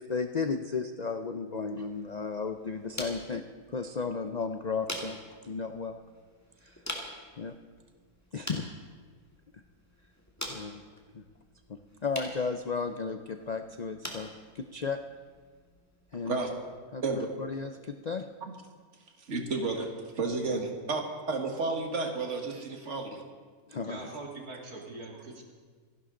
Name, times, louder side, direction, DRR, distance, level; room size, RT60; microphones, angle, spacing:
voice 1, 0.0-3.4 3.7-5.2 5.4-6.0 6.6-6.8 7.4-7.5 8.3-8.7 9.5-9.6 10.5-10.8 11.1-11.2 11.7-15.0 16.1-16.4 16.9-18.3 20.5-20.7 23.7-24.1, left 4 dB, 80° left, 7 dB, 0.3 m, -34 dB
sound 1, 1.7-16.8, left 1 dB, 10° left, 1.9 m, -46 dB
voice 2, 19.3-21.0 21.3-23.2, right 3 dB, 50° right, 3 dB, 1.9 m, -31 dB
voice 3, 23.8-25.4, right 2 dB, 80° right, -1 dB, 2.9 m, -42 dB
27.0 x 11.0 x 3.8 m, 1.6 s
omnidirectional pair, 1.6 m